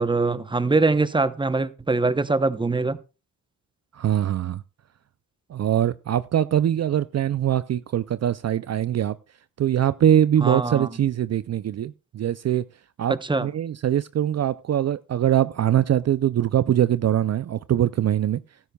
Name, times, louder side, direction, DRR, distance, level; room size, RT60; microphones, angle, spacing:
voice 1, 0.0-3.0 10.4-10.9 13.2-13.5, right 3 dB, 15° right, 0.8 m, -23 dB
voice 2, 3.9-4.6 5.5-9.2 9.6-12.6 13.0-18.4, right 11 dB, 55° right, 0.4 m, -22 dB
15.0 x 12.5 x 2.3 m
cardioid pair, 65°, 32 cm